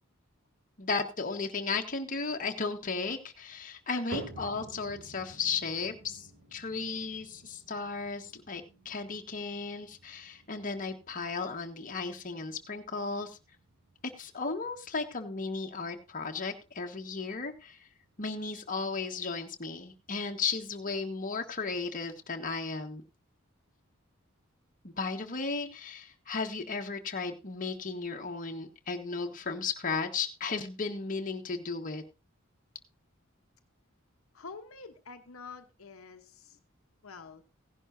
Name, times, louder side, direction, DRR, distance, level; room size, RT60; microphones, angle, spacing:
voice 1, 0.8-13.4 14.2-17.8 18.2-23.0 24.8-32.0, left 4 dB, 40° left, 4 dB, 1.4 m, -35 dB
sound 1, 4.1-20.4 20.8-21.3 21.9-22.0 22.8-22.9, right 2 dB, 60° right, 6.0 m, -51 dB
voice 2, 34.3-36.6 37.0-37.4, left 4 dB, 75° left, 5 dB, 1.1 m, -47 dB
16.5 x 11.0 x 2.7 m, 0.28 s
head